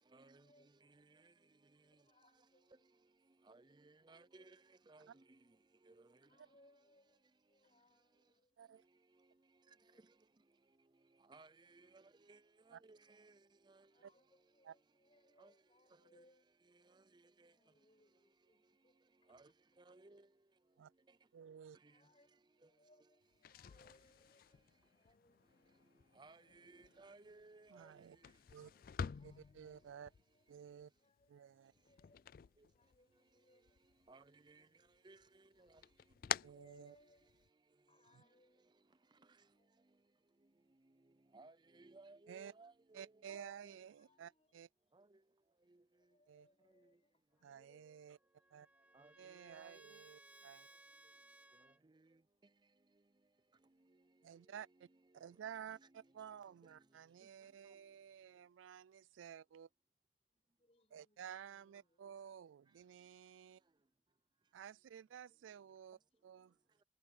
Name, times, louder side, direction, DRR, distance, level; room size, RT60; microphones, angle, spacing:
voice 1, 0.2-0.7 1.3-1.4 1.8-2.9 4.3-4.6 6.2-8.6 9.6-10.2 11.8-12.1 13.9-19.6 21.9-25.8 26.7-26.9 29.0-31.5 31.8-32.3 32.5-33.8 35.0-35.1 35.6-35.8 36.3-37.3 37.9-39.2 39.5-40.1 43.9-44.7 45.6-48.1 56.9-57.1 60.3-62.2 66.1-66.2, left 1 dB, 30° left, 5.9 m, -73 dB
voice 2, 3.5-4.6 4.9-5.1 5.9-6.0 11.3-12.0 12.3-12.4 12.7-13.3 13.7-13.8 15.4-15.5 19.3-19.5 19.9-20.2 26.2-27.9 34.1-34.6 35.0-35.2 41.3-43.5 48.9-49.1 49.4-49.8, right 3 dB, 25° right, 0.5 m, -60 dB
voice 3, 21.3-21.8 27.7-28.2 28.5-28.7 29.2-30.1 30.5-30.9 31.3-31.7 36.4-37.0 42.3-42.5 42.9-44.7 46.3-46.5 47.4-48.2 48.5-48.7 49.2-50.7 54.2-54.9 55.1-59.7 60.9-63.6 64.5-66.5, right 8 dB, 90° right, 0.3 m, -53 dB
sound 1, 23.3-33.3 33.6-34.5 34.9-37.5, left 8 dB, 50° left, 0.3 m, -49 dB
Trumpet, 47.9-51.8, right 1 dB, 10° right, 3.6 m, -63 dB
head